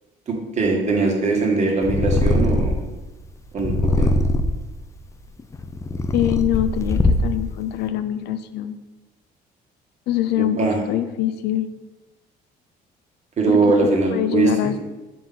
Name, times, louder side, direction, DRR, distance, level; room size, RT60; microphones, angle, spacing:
voice 1, 0.3-2.7 3.5-4.1 10.3-10.8 13.4-14.7, right 3 dB, 40° right, 0 dB, 1.7 m, -21 dB
Purr, 1.8-2.9 3.6-4.7 5.4-7.5, left 1 dB, 15° left, 0.5 m, -21 dB
voice 2, 6.1-8.8 10.1-10.6 10.9-11.7 13.5-13.6 14.1-14.8, left 12 dB, 75° left, 11 dB, 0.5 m, -23 dB
6.7 x 3.8 x 5.8 m, 1.1 s
cardioid pair, 110°, 17 cm